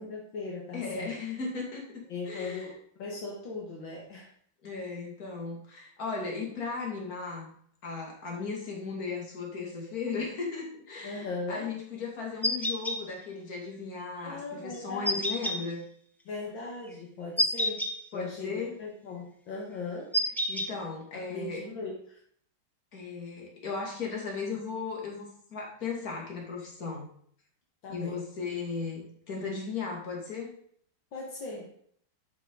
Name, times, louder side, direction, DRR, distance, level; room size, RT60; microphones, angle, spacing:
voice 1, 0.0-1.2 2.1-4.3 11.0-11.7 14.2-15.3 16.3-20.1 21.1-22.2 27.8-28.2 31.1-31.7, left 3 dB, 70° left, -2 dB, 2.3 m, -39 dB
voice 2, 0.7-1.8 2.2-2.7 4.6-7.5 7.8-15.8 18.1-18.7 20.5-21.6 22.9-27.0 27.9-30.5, left 4 dB, 45° left, -1 dB, 2.8 m, -36 dB
sound 1, 12.4-13.0 15.0-15.6 17.4-17.9 20.1-20.7, equal, 5° left, 0.3 m, -27 dB
11.5 x 6.1 x 3.9 m, 0.62 s
omnidirectional pair, 2.2 m